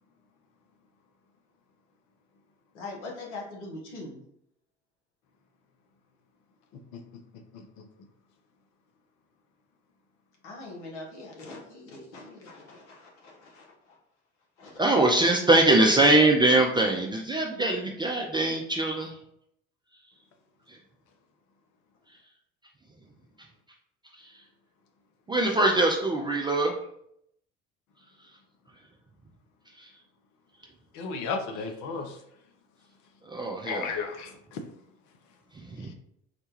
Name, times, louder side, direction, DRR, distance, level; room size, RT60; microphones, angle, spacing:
voice 1, 2.7-4.2 10.4-14.0 14.6-15.0, left 2 dB, 75° left, -2 dB, 1.0 m, -42 dB
voice 2, 7.5-7.8 30.9-32.2 33.7-34.6 35.8-35.9, left 5 dB, 55° left, 5 dB, 0.7 m, -34 dB
voice 3, 14.8-19.2 20.7-20.8 24.1-24.3 25.3-26.7 29.8-29.9 33.2-33.9 35.5-35.9, right 2 dB, 15° right, 0 dB, 0.4 m, -23 dB
4.0 x 2.2 x 3.0 m, 0.74 s
figure-of-eight pair, 60°, 35 cm